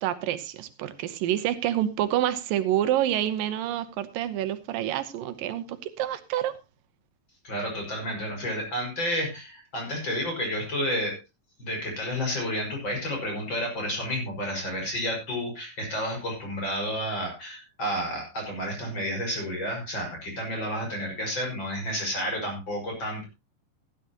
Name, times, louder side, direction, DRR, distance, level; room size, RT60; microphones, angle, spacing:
voice 1, 0.0-6.5, right 12 dB, 85° right, 12 dB, 2.7 m, -28 dB
voice 2, 7.4-11.2 11.6-23.2, equal, 30° left, 1 dB, 6.3 m, -31 dB
16.0 x 11.5 x 3.0 m, 0.25 s
omnidirectional pair, 3.9 m